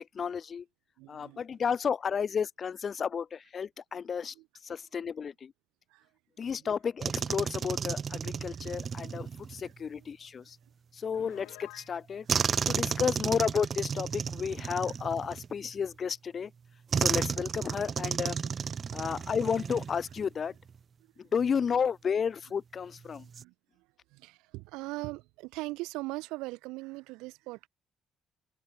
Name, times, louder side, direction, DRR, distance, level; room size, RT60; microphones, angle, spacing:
voice 1, 0.2-0.6 1.1-4.3 4.6-5.5 6.4-10.6 11.0-12.2 12.7-16.5 16.9-18.4 18.9-20.5 21.3-23.2, left 6 dB, 45° left, 0.4 m, -32 dB
voice 2, 1.0-1.6 4.2-4.5 5.0-5.1 5.9-6.1 6.6-6.8 8.5-8.6 9.6-10.1 12.2-12.3 14.8-15.0 18.9-19.3 21.0-21.3 23.1-27.7, right 22 dB, 65° right, 1.2 m, -42 dB
sound 1, 7.0-9.7 12.3-15.8 16.9-20.3 20.6-20.8 23.1-23.4, right 6 dB, 40° right, 0.9 m, -33 dB
Piano, 11.1-12.0, left 27 dB, 70° left, 2.0 m, -50 dB
open air
figure-of-eight pair, 45°, 0 cm